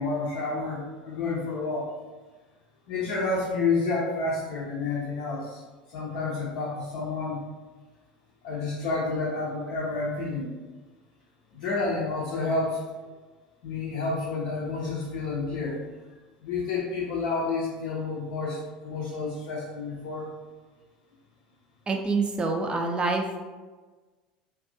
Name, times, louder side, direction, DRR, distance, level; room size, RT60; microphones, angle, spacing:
voice 1, 0.0-1.9 2.9-5.6 5.9-7.4 8.4-10.5 11.5-12.8 13.6-15.8 16.4-20.3, left 3 dB, 60° left, -6 dB, 0.5 m, -29 dB
voice 2, 21.9-23.4, right 3 dB, 20° right, 3 dB, 0.4 m, -26 dB
2.4 x 2.3 x 2.7 m, 1.3 s
figure-of-eight pair, 75°, 4 cm